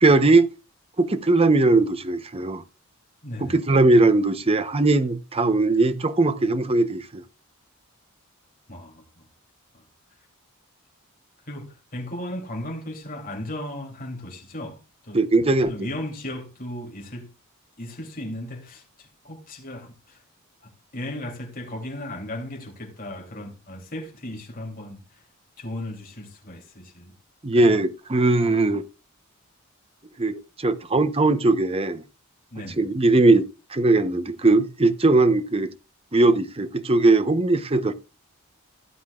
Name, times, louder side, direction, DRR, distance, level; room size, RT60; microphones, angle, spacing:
voice 1, 0.0-0.5 1.0-2.6 3.4-7.2 15.1-15.9 27.4-28.8 30.2-32.0 32.8-35.7 36.1-37.9, right 2 dB, 25° right, 0.8 m, -20 dB
voice 2, 3.2-3.6 8.7-9.3 11.5-15.2 15.5-17.3 17.8-20.2 20.6-25.2 25.6-27.1 27.5-27.8 32.5-32.8, left 1 dB, 40° left, 3.0 m, -36 dB
15.5 x 9.6 x 2.4 m
head